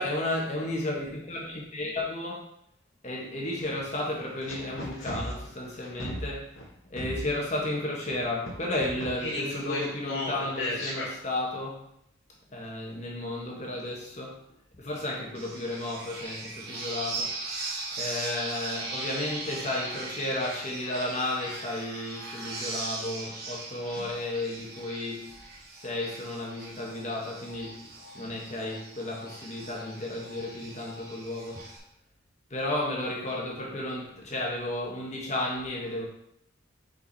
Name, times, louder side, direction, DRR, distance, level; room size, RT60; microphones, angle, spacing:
voice 1, 0.0-2.5 3.0-6.5 6.9-11.8 12.5-14.4 14.8-17.3 18.0-25.3 25.8-27.8 28.1-31.6 32.5-36.1, left 1 dB, 35° left, -1 dB, 1.4 m, -33 dB
sound 1, 3.5-3.6 4.4-6.7 7.0-7.6 8.1-11.1, left 1 dB, 90° left, 2.1 m, -34 dB
sound 2, 15.3-31.8, right 2 dB, 50° right, 1.7 m, -39 dB
5.3 x 5.2 x 4.2 m, 0.73 s
head